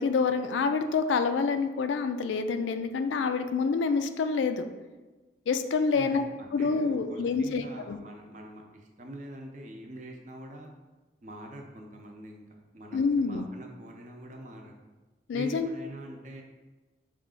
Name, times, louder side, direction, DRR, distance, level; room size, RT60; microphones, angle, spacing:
voice 1, 0.0-4.6 5.5-6.2 6.5-8.0 12.9-13.5 15.3-15.7, left 4 dB, 80° left, 8 dB, 0.3 m, -27 dB
voice 2, 5.9-10.7 11.2-12.4 12.7-14.7 15.3-16.4, right 1 dB, 40° right, 1 dB, 0.6 m, -44 dB
5.7 x 2.4 x 3.7 m, 1.2 s
head